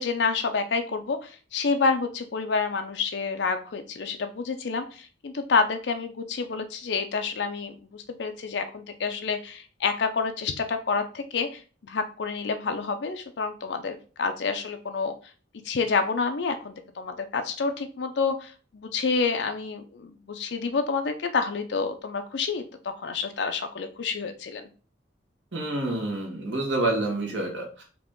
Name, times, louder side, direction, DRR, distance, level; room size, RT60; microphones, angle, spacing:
voice 1, 0.0-11.6 11.9-15.1 15.6-24.7, left 4 dB, 70° left, 7 dB, 0.5 m, -28 dB
voice 2, 25.5-27.8, right 2 dB, 80° right, 0 dB, 1.7 m, -28 dB
4.8 x 3.0 x 3.7 m, 0.37 s
head